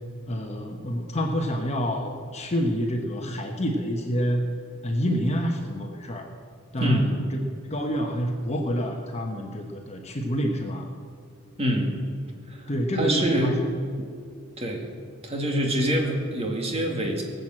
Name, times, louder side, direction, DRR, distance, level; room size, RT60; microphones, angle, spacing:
voice 1, 0.3-4.4 4.8-6.3 6.7-7.2 7.7-10.9 12.7-13.6, equal, 30° left, 3 dB, 1.1 m, -27 dB
voice 2, 6.8-7.1 11.6-12.0 12.5-12.7 12.9-13.6 14.6-14.9 15.2-17.2, equal, 25° right, 1 dB, 2.1 m, -25 dB
19.5 x 8.1 x 7.6 m, 2.3 s
head